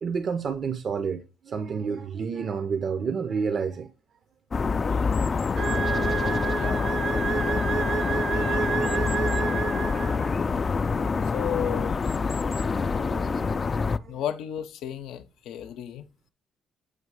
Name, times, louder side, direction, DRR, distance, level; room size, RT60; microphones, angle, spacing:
voice 1, 0.0-3.9 13.0-13.6 13.9-14.2, right 6 dB, 55° right, 0.5 m, -30 dB
sound 1, 4.5-14.0, left 4 dB, 35° left, 0.3 m, -26 dB
sound 2, 5.6-10.4, right 6 dB, 75° right, 0.9 m, -29 dB
voice 2, 6.5-6.9 8.3-8.7 11.3-12.1 14.1-16.1, left 10 dB, 85° left, 0.6 m, -34 dB
7.8 x 2.7 x 4.7 m
cardioid pair, 90°, 0 cm